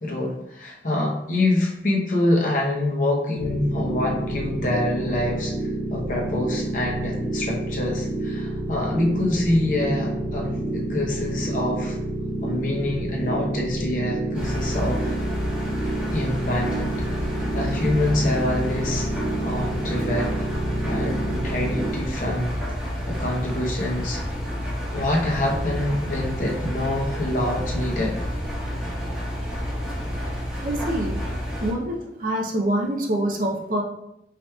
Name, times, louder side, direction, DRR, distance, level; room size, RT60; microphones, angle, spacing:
voice 1, 0.0-12.0 12.4-15.1 16.1-17.0 17.3-19.1 19.4-20.3 20.9-22.5 22.8-24.2 24.9-28.2 28.8-28.9, left 1 dB, 45° left, -1 dB, 0.7 m, -26 dB
sound 1, 3.4-21.9, right 1 dB, 25° left, 1.1 m, -29 dB
Engine, 14.3-31.7, equal, 5° right, 1.0 m, -30 dB
voice 2, 30.6-31.2 31.6-33.8, right 1 dB, 50° right, 0 dB, 0.5 m, -25 dB
4.8 x 2.9 x 2.2 m, 0.82 s
head